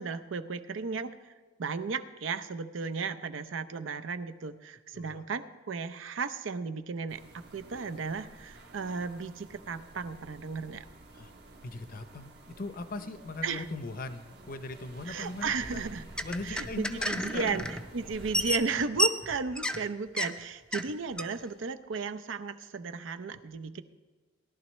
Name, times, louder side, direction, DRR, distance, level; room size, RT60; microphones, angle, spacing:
voice 1, 0.0-1.3 1.6-10.9 13.4-13.7 15.1-16.1 16.4-23.8, right 4 dB, 80° right, 12 dB, 0.6 m, -35 dB
Wind Whistling Noises, 7.1-18.6, right 1 dB, 55° right, 1.3 m, -50 dB
voice 2, 11.6-15.8 16.2-17.6, left 2 dB, 45° left, 10 dB, 0.6 m, -40 dB
sound 1, 15.9-17.9 18.1-19.9 20.2-20.3 20.7-20.9 21.2-21.3, left 1 dB, 5° left, 0.4 m, -31 dB
17.5 x 11.5 x 3.1 m, 1.3 s
head